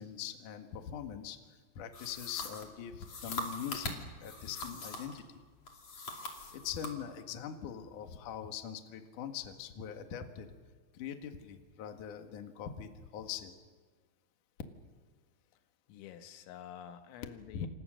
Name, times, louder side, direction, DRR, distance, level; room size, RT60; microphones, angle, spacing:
voice 1, 0.0-1.4 1.8-3.9 4.2-5.4 6.5-10.5 10.9-13.6 17.5-17.7, left 8 dB, 55° left, 5 dB, 2.5 m, -42 dB
sound 1, 1.9-5.2 5.7-7.0, left 2 dB, 40° left, 3.0 m, -42 dB
voice 2, 15.9-17.7, left 10 dB, 85° left, 7 dB, 3.9 m, -49 dB
28.0 x 27.5 x 6.6 m, 1.5 s
omnidirectional pair, 5.8 m